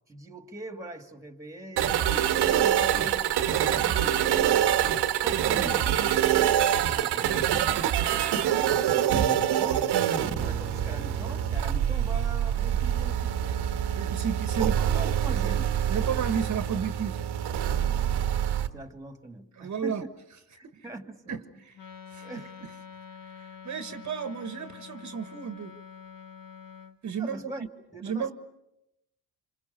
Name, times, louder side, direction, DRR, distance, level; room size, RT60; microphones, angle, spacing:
voice 1, 0.1-2.1 2.5-4.7 5.2-5.9 6.7-7.9 8.7-13.6 14.8-15.7 18.7-20.1 20.5-21.4 22.2-22.5 27.2-27.7 27.9-28.3, right 1 dB, 10° right, 6 dB, 2.3 m, -42 dB
sound 1, 1.8-18.7, right 10 dB, 90° right, 1.5 m, -25 dB
voice 2, 14.0-14.9 15.9-17.3 19.5-20.0 20.6-20.8 21.3-21.8 22.1-22.4 23.2-25.7 27.0-27.5 28.0-28.3, right 7 dB, 45° right, 8 dB, 1.5 m, -33 dB
Wind instrument woodwind instrument, 21.7-27.0, left 7 dB, 60° left, 1.7 m, -46 dB
28.0 x 26.0 x 6.9 m, 0.87 s
cardioid pair, 110°, 39 cm